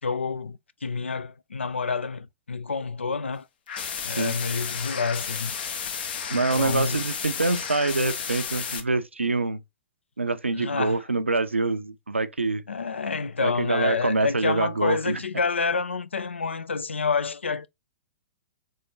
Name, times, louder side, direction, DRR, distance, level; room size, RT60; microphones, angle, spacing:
voice 1, 0.0-3.4 4.0-5.5 6.3-7.0 10.5-11.0 12.7-17.7, left 5 dB, 75° left, 0.4 m, -28 dB
sound 1, 3.7-8.8, left 7 dB, 55° left, 0.8 m, -32 dB
voice 2, 6.3-9.6 10.2-12.6 13.4-15.2, right 3 dB, 85° right, 0.5 m, -25 dB
3.9 x 3.4 x 2.7 m
figure-of-eight pair, 105°, 6 cm